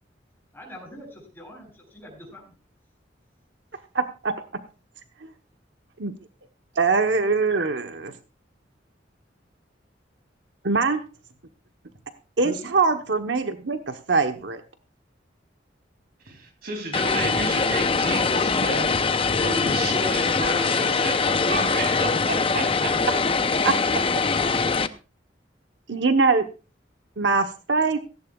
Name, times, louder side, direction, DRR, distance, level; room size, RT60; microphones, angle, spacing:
voice 1, 0.5-2.5, equal, 10° left, 7.3 m, -44 dB
voice 2, 3.9-4.3 6.0-6.1 6.8-8.1 10.6-11.0 12.4-14.6 23.6-23.8 25.9-26.5 27.2-28.0, right 4 dB, 80° right, 1.1 m, -22 dB
voice 3, 16.2-19.1 19.4-23.2, right 2 dB, 55° right, 2.9 m, -31 dB
Vehicle, 16.9-24.9, left 4 dB, 30° left, 0.6 m, -23 dB
17.0 x 15.5 x 2.4 m
head